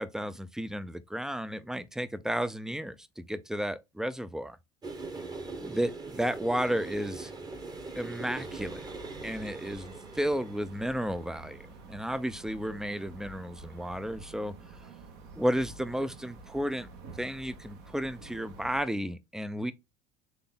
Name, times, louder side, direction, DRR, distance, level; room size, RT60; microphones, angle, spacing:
voice 1, 0.0-4.6 5.6-7.3 8.0-8.9 9.2-14.5 15.4-16.9 17.2-19.7, equal, 5° right, 0.4 m, -33 dB
sound 1, 4.8-14.2, right 3 dB, 20° right, 1.0 m, -43 dB
sound 2, 8.4-18.8, right 4 dB, 60° right, 1.3 m, -49 dB
3.9 x 3.4 x 3.7 m
supercardioid pair, 95°, 19 cm